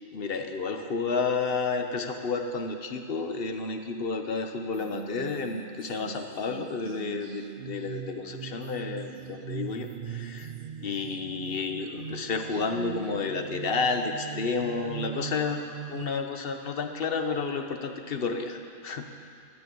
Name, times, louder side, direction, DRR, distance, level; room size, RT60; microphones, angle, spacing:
voice 1, 0.1-10.5 10.8-15.6 15.9-19.1, left 4 dB, 45° left, 5 dB, 1.1 m, -31 dB
sound 1, 4.7-16.0, right 8 dB, 70° right, 0.5 m, -40 dB
13.0 x 10.5 x 8.4 m, 2.5 s
omnidirectional pair, 1.4 m